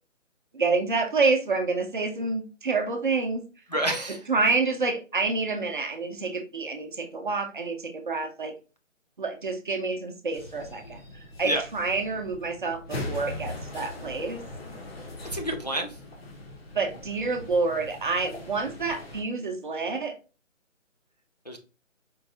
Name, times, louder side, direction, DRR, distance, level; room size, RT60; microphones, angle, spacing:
voice 1, 0.5-3.4 4.3-8.5 9.2-14.4 16.7-20.1, right 3 dB, 40° right, 5 dB, 0.7 m, -28 dB
voice 2, 3.7-4.2 11.4-11.6 15.3-16.0 21.5-21.6, right 1 dB, 35° left, 2 dB, 0.4 m, -28 dB
sound 1, 10.3-19.2, left 1 dB, 50° left, 1.2 m, -40 dB
4.6 x 3.8 x 2.5 m, 0.33 s
figure-of-eight pair, 155°, 39 cm